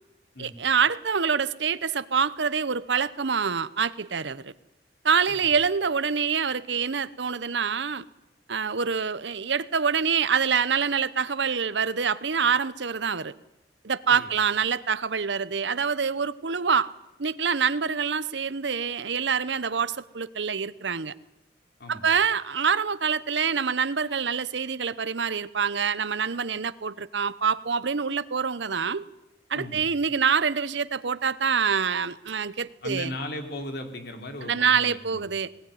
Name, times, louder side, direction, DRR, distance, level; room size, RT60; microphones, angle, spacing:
voice 1, 0.4-4.5 5.0-8.0 8.5-13.3 13.8-16.9 17.2-21.1 21.9-29.0 29.5-33.1 34.5-35.5, right 6 dB, 70° right, 17 dB, 0.8 m, -26 dB
voice 2, 29.5-29.9 32.8-35.2, left 1 dB, 60° left, 5 dB, 3.2 m, -37 dB
19.5 x 18.5 x 10.0 m, 0.94 s
head